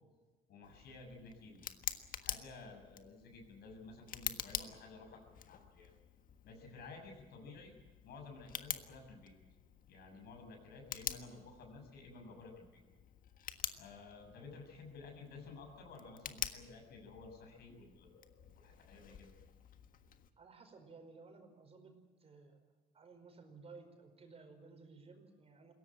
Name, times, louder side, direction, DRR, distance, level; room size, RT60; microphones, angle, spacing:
voice 1, 0.5-1.6 2.2-5.9 6.4-7.7 8.0-9.3 9.9-12.8 13.7-19.3, left 3 dB, 70° left, 3 dB, 7.3 m, -53 dB
Tick, 0.6-20.3, left 9 dB, 55° left, 1.5 m, -47 dB
voice 2, 20.3-21.9 22.2-22.6 22.9-25.7, right 4 dB, 35° right, 5 dB, 4.9 m, -56 dB
21.5 x 17.5 x 8.8 m, 1.3 s
cardioid pair, 110°, 17 cm